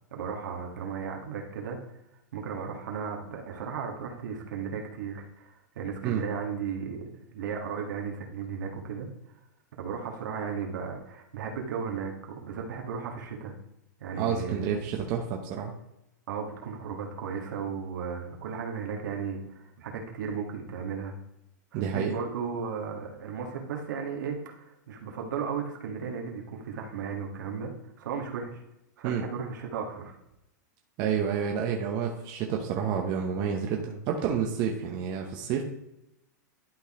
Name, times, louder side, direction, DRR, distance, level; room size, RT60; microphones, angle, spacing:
voice 1, 0.1-1.8 2.3-9.1 9.8-13.5 14.0-14.6 16.3-21.1 21.7-27.7 28.0-28.6 29.0-30.1, right 6 dB, 75° right, 1 dB, 1.9 m, -35 dB
voice 2, 14.1-15.7 21.7-22.1 29.0-29.2 31.0-35.6, right 7 dB, 45° right, 2 dB, 1.0 m, -29 dB
11.5 x 4.1 x 3.7 m, 0.86 s
hypercardioid pair, 125°, 10 cm